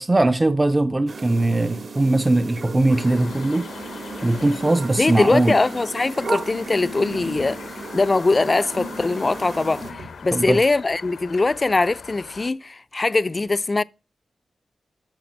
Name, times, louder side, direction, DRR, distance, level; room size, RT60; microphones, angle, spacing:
voice 1, 0.0-3.7 4.2-5.6 10.3-10.6, right 2 dB, 20° right, 0.5 m, -20 dB
sound 1, 1.1-9.9, right 4 dB, 65° right, 2.2 m, -35 dB
sound 2, 2.9-12.5, left 6 dB, 85° left, 0.8 m, -41 dB
voice 2, 5.0-7.6 7.9-13.8, left 3 dB, 35° left, 0.4 m, -21 dB
sound 3, 6.2-7.7 8.7-10.2, left 2 dB, 85° right, 4.4 m, -38 dB
9.1 x 6.7 x 6.1 m
cardioid pair, 80°, 0 cm